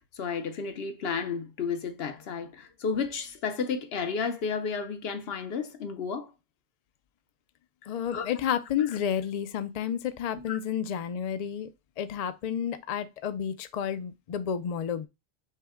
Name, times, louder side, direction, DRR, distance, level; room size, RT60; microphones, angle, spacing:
voice 1, 0.1-6.3 8.1-8.3 10.3-10.6, left 5 dB, 75° left, 0.9 m, -32 dB
voice 2, 7.9-11.7 12.0-15.1, left 8 dB, 55° left, 0.5 m, -31 dB
5.4 x 2.1 x 3.5 m
omnidirectional pair, 1.0 m